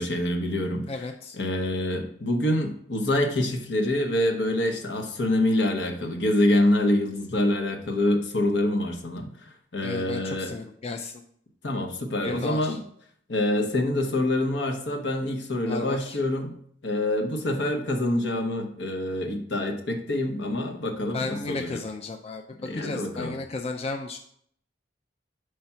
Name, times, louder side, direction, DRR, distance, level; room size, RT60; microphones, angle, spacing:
voice 1, 0.0-0.9 1.4-9.3 9.7-10.5 11.6-12.8 13.3-16.5 16.8-21.8 22.6-23.4, left 1 dB, 75° left, 4 dB, 1.0 m, -26 dB
voice 2, 0.9-1.4 9.8-11.2 12.2-12.8 15.6-16.2 21.1-22.4 22.7-24.2, left 3 dB, 35° left, 4 dB, 0.4 m, -34 dB
5.5 x 3.4 x 5.7 m, 0.64 s
head